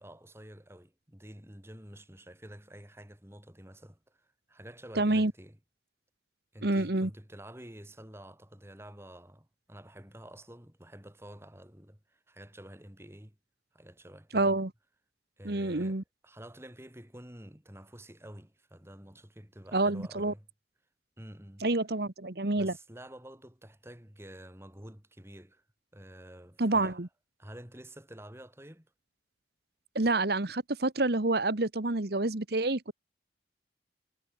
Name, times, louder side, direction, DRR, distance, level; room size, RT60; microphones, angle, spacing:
voice 1, 0.0-5.6 6.5-13.4 13.7-14.6 15.4-20.5 21.2-21.7 22.5-25.6 25.9-27.0 27.4-28.9, right 1 dB, 15° right, 3.0 m, -49 dB
voice 2, 4.9-5.3 6.6-7.1 14.3-14.7 15.4-16.0 19.7-20.3 21.6-22.7 26.6-27.1 29.9-32.9, right 2 dB, 60° right, 1.4 m, -28 dB
head